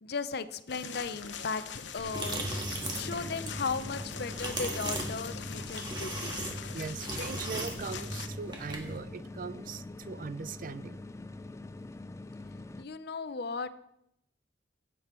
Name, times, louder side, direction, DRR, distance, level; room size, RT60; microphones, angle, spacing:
voice 1, 0.0-6.4 12.8-13.7, left 4 dB, 60° left, 13 dB, 0.7 m, -36 dB
sound 1, 0.7-8.3, left 7 dB, 80° left, 1.0 m, -43 dB
sound 2, 2.0-9.0, right 2 dB, 25° right, 2.0 m, -38 dB
sound 3, 2.2-12.9, left 2 dB, 15° left, 0.4 m, -45 dB
voice 2, 6.7-11.0, right 5 dB, 45° right, 16 dB, 0.4 m, -40 dB
16.5 x 7.7 x 4.5 m, 0.79 s
head